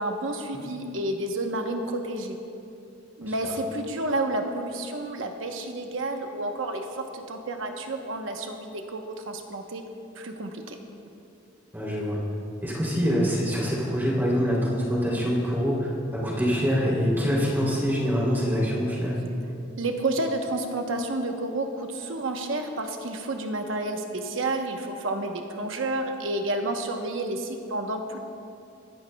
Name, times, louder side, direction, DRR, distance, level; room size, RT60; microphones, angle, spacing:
voice 1, 0.0-2.4 3.2-9.8 10.2-10.8 19.8-28.2, right 2 dB, 70° right, 4 dB, 0.9 m, -30 dB
voice 2, 11.7-12.2 12.6-19.1, equal, 10° right, -5 dB, 3.0 m, -25 dB
22.0 x 11.5 x 2.3 m, 2.6 s
head